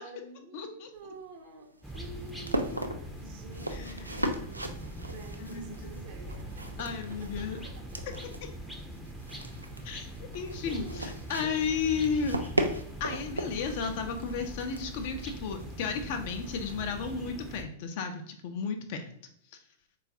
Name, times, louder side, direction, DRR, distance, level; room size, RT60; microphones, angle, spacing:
voice 1, 0.0-4.8 5.1-6.8 7.1-8.0 10.7-11.1 11.4-11.6, right 3 dB, 50° right, 4 dB, 0.6 m, -49 dB
voice 2, 0.5-0.9 3.7-4.1 5.4-5.7 6.8-7.6 9.8-10.1 10.3-12.4 13.0-19.1, left 5 dB, 50° left, 6 dB, 0.4 m, -33 dB
sound 1, 0.9-17.3, right 1 dB, 90° right, 0.3 m, -38 dB
sound 2, 1.8-17.6, right 1 dB, ahead, 0.5 m, -42 dB
3.8 x 2.3 x 2.7 m, 0.68 s
figure-of-eight pair, 95°, 0 cm